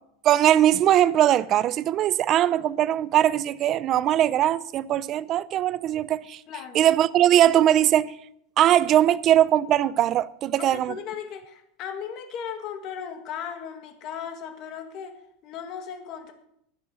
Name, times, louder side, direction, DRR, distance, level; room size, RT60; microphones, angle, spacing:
voice 1, 0.2-6.4 6.7-8.1 8.6-11.0, right 11 dB, 30° right, 0.5 m, -20 dB
voice 2, 6.5-6.8 10.6-16.3, left 8 dB, 35° left, 2.0 m, -36 dB
15.0 x 10.0 x 6.3 m
supercardioid pair, 165°, 0 cm